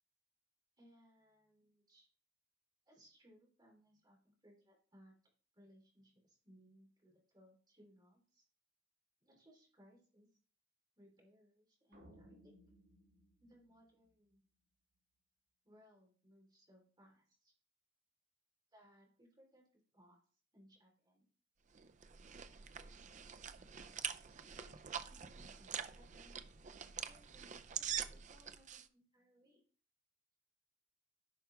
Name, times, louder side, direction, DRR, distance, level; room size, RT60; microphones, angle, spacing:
voice 1, 0.8-2.1 2.9-5.2 5.5-8.4 9.2-10.3 11.0-12.6 13.4-14.4 15.6-17.5 18.7-20.2 20.5-21.3 24.3-26.5 27.0-29.6, equal, 20° right, 0 dB, 3.6 m, -66 dB
sound 1, 11.9-14.4, equal, 65° right, 4.2 m, -63 dB
sound 2, 21.8-28.9, right 8 dB, 40° right, 0.5 m, -45 dB
11.0 x 5.8 x 3.4 m, 0.41 s
head